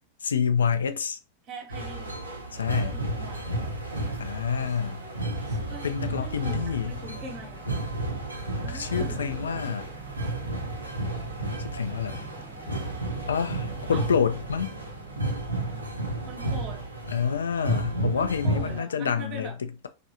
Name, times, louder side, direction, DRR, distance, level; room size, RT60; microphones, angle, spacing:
voice 1, 0.2-1.2 2.5-3.0 4.2-5.0 5.8-6.9 8.7-9.9 11.7-12.3 13.3-14.8 17.1-19.9, left 7 dB, 70° left, 0.4 m, -28 dB
voice 2, 1.4-2.2 2.8-3.8 4.7-7.6 8.6-9.4 13.9-14.1 16.3-16.8 18.1-19.5, right 2 dB, 35° right, 1.0 m, -43 dB
sound 1, 1.7-18.8, right 1 dB, 80° right, 0.6 m, -32 dB
sound 2, 6.9-15.9, right 1 dB, 10° right, 0.7 m, -47 dB
3.1 x 2.4 x 2.7 m
figure-of-eight pair, 90°, 0 cm